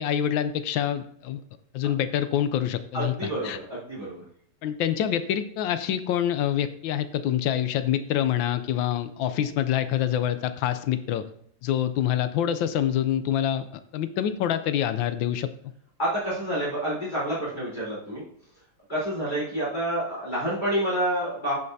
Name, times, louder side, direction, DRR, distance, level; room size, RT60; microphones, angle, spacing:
voice 1, 0.0-1.4 1.7-3.6 4.6-11.3 11.6-13.7 13.9-15.5, left 10 dB, 80° left, 11 dB, 1.3 m, -26 dB
voice 2, 2.9-4.2 16.0-18.2 18.9-21.5, right 1 dB, 25° left, -8 dB, 3.8 m, -28 dB
14.0 x 5.5 x 2.7 m, 0.65 s
omnidirectional pair, 2.1 m